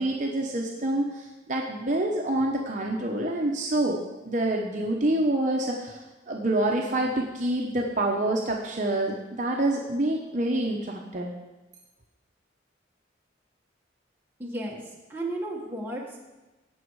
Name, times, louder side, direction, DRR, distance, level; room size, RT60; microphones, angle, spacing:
voice 1, 0.0-11.3, right 1 dB, 40° right, 0 dB, 0.9 m, -27 dB
voice 2, 14.4-14.8 15.1-16.2, right 1 dB, 10° right, -3 dB, 1.7 m, -33 dB
16.5 x 6.2 x 4.8 m, 1.1 s
head